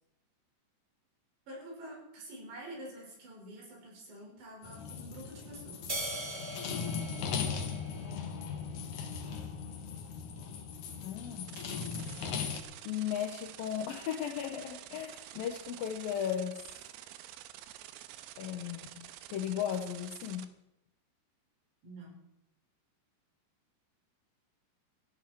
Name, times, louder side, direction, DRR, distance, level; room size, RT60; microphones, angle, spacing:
voice 1, 1.5-6.0 21.8-22.2, right 1 dB, 65° right, -2 dB, 8.0 m, -47 dB
sound 1, 4.6-12.6, left 6 dB, 60° left, 2.3 m, -38 dB
sound 2, 5.9-8.5, right 2 dB, 25° right, 1.4 m, -41 dB
voice 2, 11.0-11.6 12.9-16.6 18.4-20.5, left 9 dB, 75° left, 5 dB, 2.1 m, -36 dB
sound 3, 11.5-20.4, right 13 dB, 85° right, 3.1 m, -49 dB
16.5 x 16.0 x 4.6 m, 0.83 s
omnidirectional pair, 5.4 m